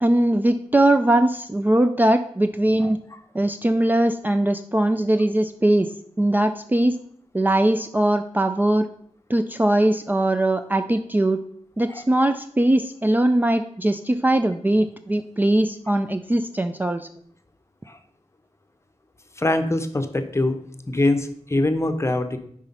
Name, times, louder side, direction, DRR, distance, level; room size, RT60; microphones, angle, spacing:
voice 1, 0.0-3.0 3.3-5.9 6.2-7.0 7.3-8.9 9.3-11.4 11.8-17.1, right 1 dB, 15° right, 8 dB, 0.3 m, -20 dB
voice 2, 19.4-20.6 20.9-22.4, left 2 dB, 25° left, 8 dB, 0.8 m, -23 dB
5.5 x 4.9 x 5.3 m, 0.66 s
wide cardioid pair, 65°, 12 cm